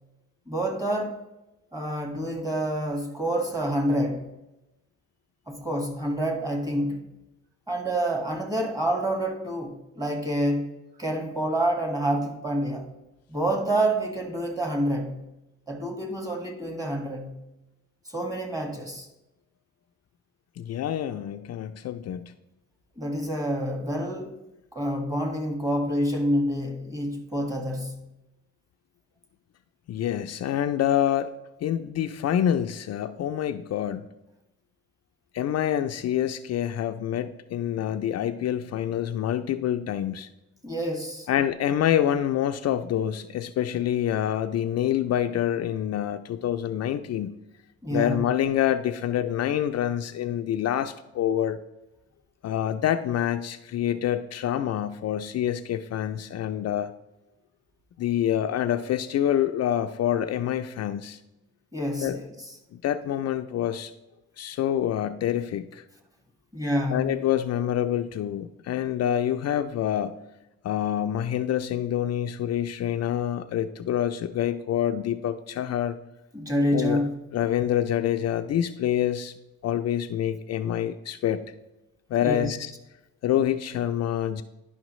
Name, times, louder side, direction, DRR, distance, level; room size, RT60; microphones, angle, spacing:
voice 1, 0.5-1.2 1.7-4.3 5.5-7.1 7.7-10.7 11.0-12.9 13.3-15.3 15.7-17.4 18.0-19.1 23.0-24.3 24.7-28.0 40.6-41.3 47.8-48.2 61.7-62.3 66.5-67.1 76.3-77.2 82.2-82.5, right 1 dB, 10° right, 1.7 m, -28 dB
voice 2, 20.6-22.3 29.9-31.3 31.6-34.0 35.3-40.3 41.3-47.3 47.9-51.6 52.4-56.9 58.0-61.2 62.0-62.2 62.7-63.9 64.4-65.8 66.9-70.2 70.6-76.0 76.7-79.3 79.6-81.4 82.1-82.7 83.2-84.4, left 10 dB, 55° left, 0.5 m, -26 dB
11.0 x 5.6 x 3.1 m
cardioid pair, 90°, 30 cm